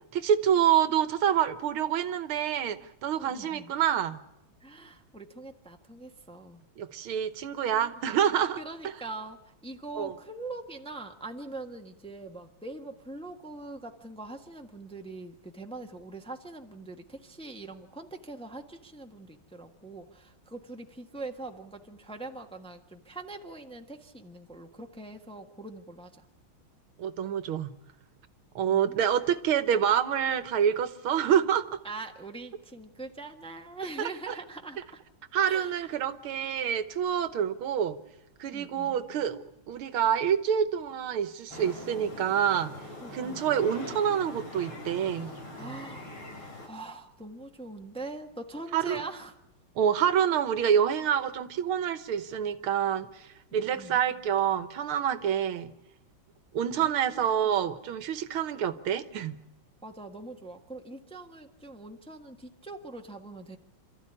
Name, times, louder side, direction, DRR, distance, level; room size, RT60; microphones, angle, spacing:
voice 1, 0.1-4.2 6.8-8.6 8.8-8.9 10.0-10.1 27.0-27.7 28.6-31.6 34.0-34.4 35.3-38.0 38.4-39.4 39.7-42.7 43.1-45.3 48.7-49.1 49.8-55.7 56.5-59.4, right 9 dB, 85° right, 12 dB, 2.0 m, -27 dB
voice 2, 3.2-3.7 4.6-6.6 7.8-7.9 8.6-26.2 28.7-29.1 31.8-35.0 35.4-35.8 38.5-38.9 43.0-43.4 45.6-46.2 46.6-49.4 53.5-54.0 56.6-57.2 59.8-63.6, right 2 dB, 5° left, 4 dB, 1.1 m, -43 dB
sound 1, 41.5-46.7, left 1 dB, 90° left, 5.5 m, -42 dB
28.0 x 14.0 x 9.9 m, 0.91 s
omnidirectional pair, 2.3 m